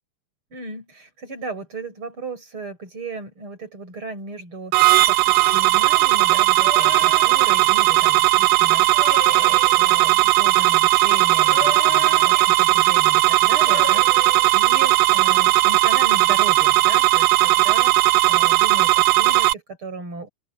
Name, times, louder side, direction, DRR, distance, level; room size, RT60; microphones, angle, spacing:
voice 1, 0.5-8.9 9.3-14.1 14.5-18.0 18.2-20.3, right 3 dB, 30° right, 6.6 m, -36 dB
sound 1, 4.7-19.5, right 18 dB, 85° right, 1.8 m, -17 dB
sound 2, 6.5-7.4 8.8-9.9 11.3-12.5 13.5-14.5, left 6 dB, 50° left, 2.9 m, -34 dB
open air
omnidirectional pair, 4.6 m